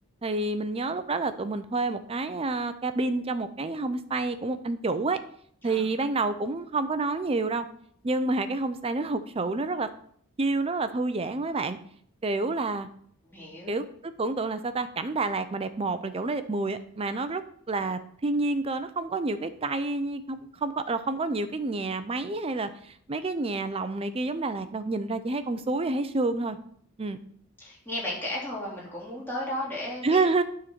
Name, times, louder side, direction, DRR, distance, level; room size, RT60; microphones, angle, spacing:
voice 1, 0.2-5.2 5.6-7.7 8.0-9.9 10.4-11.8 12.2-12.9 13.7-17.4 17.7-26.6 27.0-27.2 30.0-30.4, right 3 dB, 25° right, 11 dB, 0.5 m, -29 dB
voice 2, 13.3-13.8 17.8-17.9 27.6-30.3, left 1 dB, 10° left, -6 dB, 2.8 m, -34 dB
9.6 x 3.8 x 5.9 m, 0.62 s
head